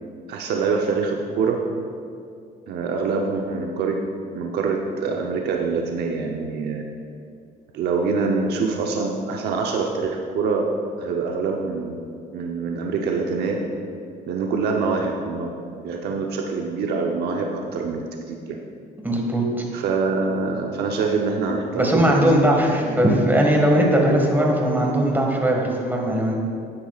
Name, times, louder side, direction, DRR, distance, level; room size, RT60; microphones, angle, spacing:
voice 1, 0.3-1.6 2.7-3.9 4.3-6.8 7.7-10.7 11.0-12.0 12.3-13.7 14.3-18.6 19.7-22.5 22.8-22.9, right 4 dB, 75° right, 1 dB, 0.8 m, -25 dB
voice 2, 19.0-19.7 21.7-26.3, right 1 dB, 10° right, 0 dB, 1.7 m, -19 dB
11.5 x 9.8 x 2.4 m, 2.4 s
cardioid pair, 110°, 17 cm